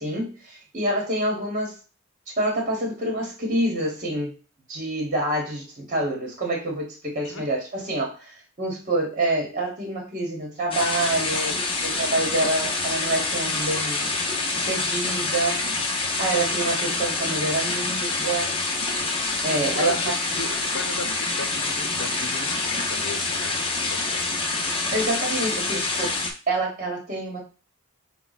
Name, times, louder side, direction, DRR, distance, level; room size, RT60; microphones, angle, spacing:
voice 1, 0.0-1.8 2.3-4.3 4.7-14.1 14.5-18.6 19.4-20.0 24.9-26.2 26.5-27.4, right 2 dB, 35° right, 0 dB, 1.2 m, -27 dB
sound 1, 10.7-26.3, left 3 dB, 25° left, 0.7 m, -26 dB
voice 2, 19.7-23.6 23.8-24.6, left 3 dB, 55° left, 4 dB, 0.9 m, -36 dB
5.2 x 2.3 x 4.0 m, 0.34 s
head